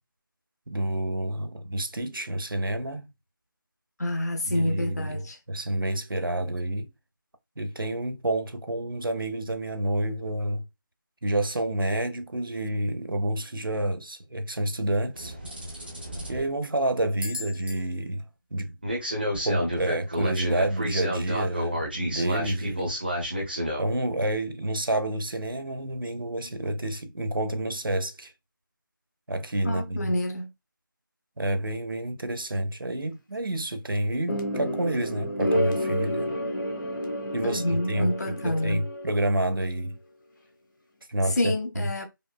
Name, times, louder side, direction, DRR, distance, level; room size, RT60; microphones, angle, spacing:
voice 1, 0.7-3.1 4.4-5.2 5.5-6.9 7.6-10.6 11.2-15.3 16.3-18.2 18.5-18.8 19.4-22.9 23.8-28.3 29.3-30.1 31.4-36.3 37.3-40.0 41.1-41.8, right 1 dB, 80° right, 0.8 m, -29 dB
voice 2, 4.0-5.4 29.6-30.5 37.4-38.8 41.2-42.1, left 1 dB, 50° left, 0.8 m, -28 dB
sound 1, 15.1-16.5 17.2-17.7 18.8-23.9, equal, 25° right, 0.8 m, -30 dB
sound 2, 34.3-39.4, equal, 65° left, 1.1 m, -30 dB
5.1 x 2.1 x 2.2 m
figure-of-eight pair, 175°, 11 cm